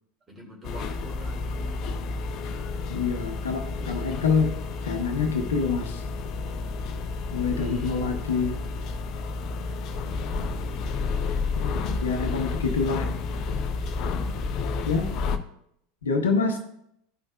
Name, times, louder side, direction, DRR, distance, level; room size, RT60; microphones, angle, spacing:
voice 1, 0.3-1.9 3.8-4.2 6.3-6.4 7.5-8.1, right 2 dB, 25° right, -1 dB, 2.2 m, -44 dB
sound 1, 0.6-15.4, left 4 dB, 40° left, 0.5 m, -31 dB
voice 2, 2.9-4.5 4.8-6.0 7.3-8.6 11.6-13.1 14.8-15.3 16.0-16.6, left 5 dB, 70° left, 5 dB, 0.8 m, -26 dB
13.0 x 5.3 x 2.3 m, 0.73 s
figure-of-eight pair, 80°, 0 cm